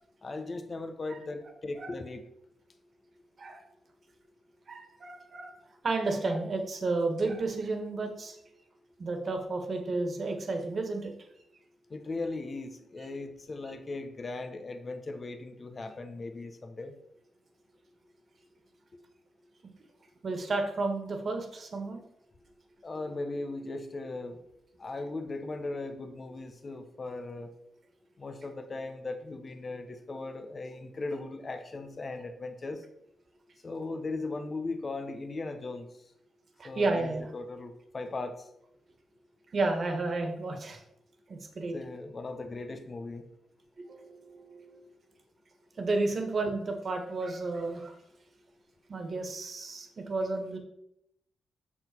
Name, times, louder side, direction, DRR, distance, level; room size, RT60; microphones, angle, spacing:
voice 1, 0.2-2.2 11.9-16.9 22.8-24.4 24.8-27.5 28.2-32.8 33.6-35.9 36.6-38.5 41.7-43.3, left 3 dB, 40° left, 7 dB, 1.0 m, -38 dB
voice 2, 4.7-5.5 5.8-8.4 9.0-11.1 20.2-22.0 36.6-37.2 39.5-40.8 41.3-41.7 43.9-44.8 45.8-47.9 48.9-50.6, right 3 dB, 50° right, 4 dB, 1.6 m, -32 dB
7.8 x 6.1 x 4.5 m, 0.77 s
cardioid pair, 80°, 0 cm